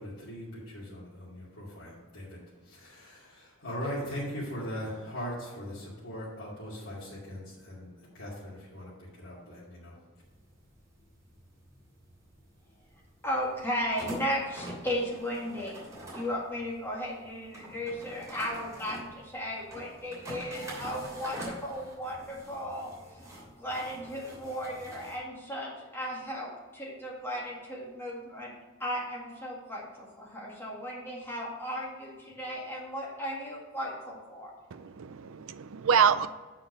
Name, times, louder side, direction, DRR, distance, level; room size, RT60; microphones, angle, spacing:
voice 1, 0.0-10.0, equal, 80° left, -9 dB, 2.6 m, -40 dB
sound 1, 10.2-25.2, right 1 dB, 15° right, 3.0 m, -46 dB
voice 2, 13.2-15.9 16.1-23.2 23.6-28.5 28.8-34.5, equal, 10° left, -4 dB, 2.0 m, -35 dB
voice 3, 34.7-36.3, right 7 dB, 75° right, 13 dB, 0.5 m, -26 dB
6.7 x 5.8 x 6.1 m, 1.3 s
head